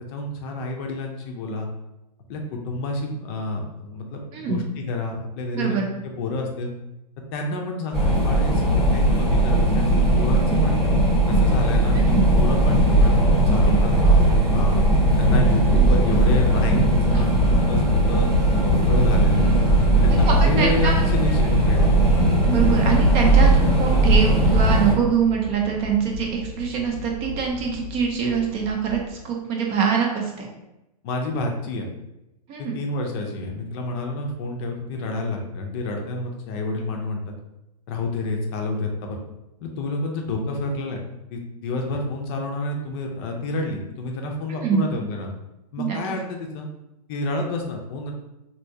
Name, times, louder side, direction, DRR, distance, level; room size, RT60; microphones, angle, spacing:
voice 1, 0.1-1.7 2.3-6.7 7.3-10.8 11.3-14.7 15.2-18.3 18.6-19.5 20.0-22.0 31.0-31.9 32.6-37.2 37.9-39.2 39.6-41.0 41.3-45.3 45.7-46.7 47.1-48.1, left 2 dB, 35° left, 2 dB, 0.6 m, -29 dB
voice 2, 4.3-4.6 5.5-5.9 12.0-12.4 15.8-15.9 17.1-17.2 20.1-21.0 21.4-21.5 22.4-30.5 32.5-32.7 44.6-44.9 45.8-46.0, right 6 dB, 30° right, 0 dB, 0.6 m, -24 dB
sound 1, 7.9-24.9, right 1 dB, ahead, 1.0 m, -18 dB
sound 2, 22.1-29.1, left 3 dB, 85° right, 0.9 m, -37 dB
3.4 x 2.8 x 2.7 m, 0.92 s
hypercardioid pair, 140°, 21 cm